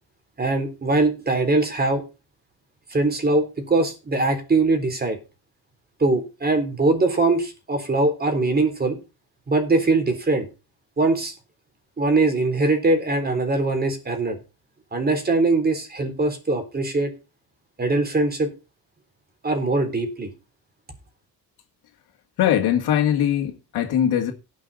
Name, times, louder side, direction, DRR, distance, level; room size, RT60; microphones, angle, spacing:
voice 1, 0.4-2.0 2.9-5.2 6.0-9.0 9.5-10.5 11.0-11.3 12.0-14.4 14.9-17.1 17.8-18.5 19.4-20.3, right 2 dB, 25° right, 3.6 m, -21 dB
voice 2, 22.4-24.3, left 10 dB, 80° left, 2.3 m, -21 dB
17.5 x 6.3 x 4.1 m
cardioid pair, 125°, 37 cm